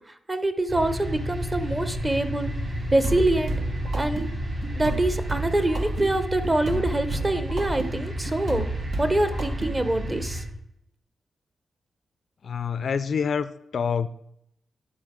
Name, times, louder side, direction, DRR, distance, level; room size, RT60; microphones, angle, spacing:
voice 1, 0.3-2.5 2.9-3.5 3.9-4.3 4.7-8.7 9.0-10.4, right 1 dB, 25° right, 10 dB, 0.8 m, -25 dB
sound 1, 0.7-10.4, equal, 65° right, 1.8 m, -32 dB
sound 2, 3.0-10.2, right 2 dB, 85° right, 1.2 m, -32 dB
voice 2, 12.4-14.1, left 6 dB, 65° left, 14 dB, 0.3 m, -27 dB
11.5 x 4.1 x 3.7 m, 0.76 s
cardioid pair, 70°, 0 cm